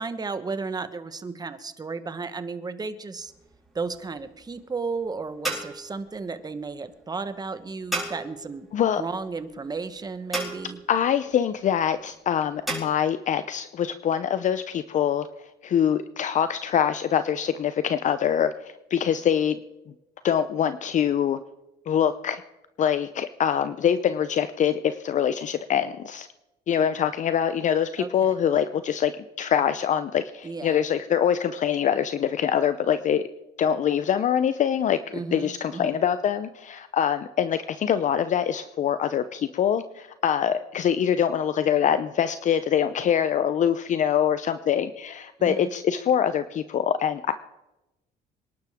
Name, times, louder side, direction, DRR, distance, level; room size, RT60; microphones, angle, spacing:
voice 1, 0.0-3.3 3.7-8.7 9.0-10.8 27.0-27.1 28.0-28.3 30.4-30.8 35.1-36.0 45.4-45.7, right 4 dB, 25° right, 11 dB, 1.2 m, -34 dB
sound 1, 3.2-12.8, right 2 dB, ahead, 6.4 m, -37 dB
voice 2, 10.9-15.3 15.6-18.5 18.9-19.6 20.2-21.4 21.9-22.4 22.8-26.3 26.7-29.1 29.4-33.2 33.6-47.3, left 9 dB, 45° left, 12 dB, 0.6 m, -24 dB
26.5 x 11.5 x 3.6 m, 0.99 s
cardioid pair, 110°, 17 cm